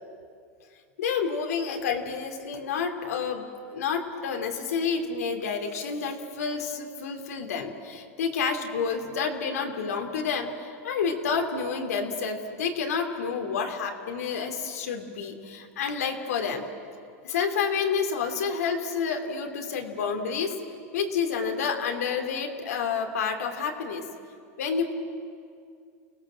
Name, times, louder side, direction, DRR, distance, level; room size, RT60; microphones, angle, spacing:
voice 1, 1.0-16.7 17.2-20.5 20.9-24.0 24.6-24.9, left 6 dB, 90° left, 3 dB, 2.9 m, -29 dB
30.0 x 18.5 x 7.5 m, 2.3 s
supercardioid pair, 120°, 8 cm